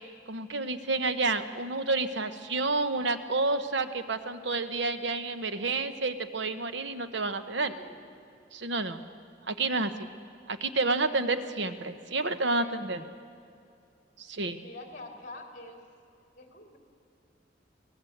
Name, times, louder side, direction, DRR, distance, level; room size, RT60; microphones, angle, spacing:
voice 1, 0.3-7.7 8.5-9.0 9.5-10.1 10.5-13.0 14.2-14.6, right 3 dB, 75° right, 10 dB, 1.1 m, -30 dB
voice 2, 7.6-8.0 12.6-12.8 14.6-15.8 16.4-16.8, left 2 dB, 45° left, 3 dB, 3.0 m, -46 dB
24.0 x 18.5 x 8.0 m, 2.5 s
head